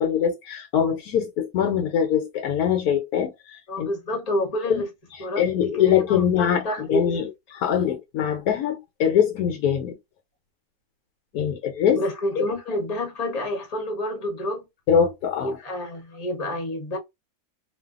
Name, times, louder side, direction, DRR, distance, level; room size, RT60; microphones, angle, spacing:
voice 1, 0.0-3.9 4.7-4.8 5.1-10.0 11.3-12.0 12.4-12.5 14.9-15.6, left 8 dB, 75° left, 1.1 m, -23 dB
voice 2, 3.7-4.9 5.2-7.2 11.9-14.7 15.4-17.0, left 1 dB, 30° left, 0.8 m, -29 dB
2.5 x 2.3 x 2.3 m
omnidirectional pair, 1.6 m